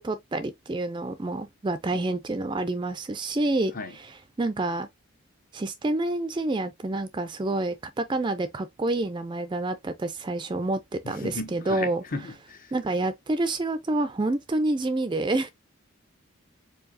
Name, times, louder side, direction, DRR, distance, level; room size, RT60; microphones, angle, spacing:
voice 1, 0.0-4.9 5.5-12.0 12.7-15.5, right 2 dB, 20° right, 0.3 m, -28 dB
voice 2, 11.0-12.7, left 3 dB, 40° left, 0.7 m, -36 dB
4.7 x 2.7 x 2.6 m
head